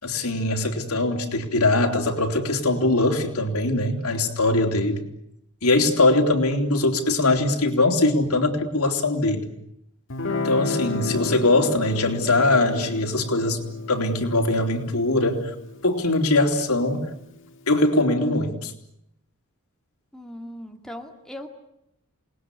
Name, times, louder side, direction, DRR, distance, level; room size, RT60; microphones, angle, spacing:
voice 1, 0.0-5.0 5.6-9.4 10.3-13.6 13.9-15.5 15.8-17.1 17.7-18.7, left 2 dB, 80° left, 3 dB, 3.8 m, -21 dB
Guitar, 10.1-17.2, left 2 dB, 60° left, 2.2 m, -33 dB
voice 2, 20.1-21.5, left 1 dB, 5° left, 3 dB, 2.2 m, -38 dB
28.5 x 20.0 x 9.9 m, 0.80 s
head